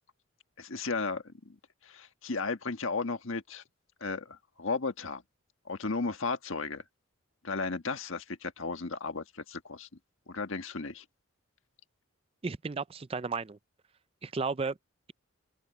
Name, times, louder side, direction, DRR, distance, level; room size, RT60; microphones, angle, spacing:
voice 1, 0.6-1.5 1.8-3.6 4.0-5.2 5.7-6.8 7.4-9.9 10.3-11.0, left 4 dB, 65° left, 1.5 m, -34 dB
voice 2, 12.4-13.6 14.2-14.8, right 4 dB, 25° right, 0.4 m, -33 dB
open air
head